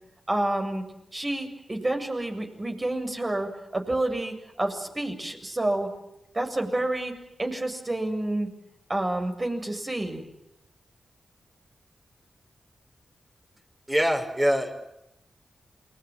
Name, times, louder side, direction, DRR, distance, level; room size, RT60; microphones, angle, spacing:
voice 1, 0.3-0.8 1.1-5.9 6.3-7.1 7.4-8.5 8.9-10.2, right 1 dB, 35° right, 4 dB, 7.5 m, -29 dB
voice 2, 13.9-14.7, equal, 20° right, 3 dB, 6.2 m, -23 dB
28.5 x 22.5 x 7.6 m, 0.86 s
cardioid pair, 40°, 0 cm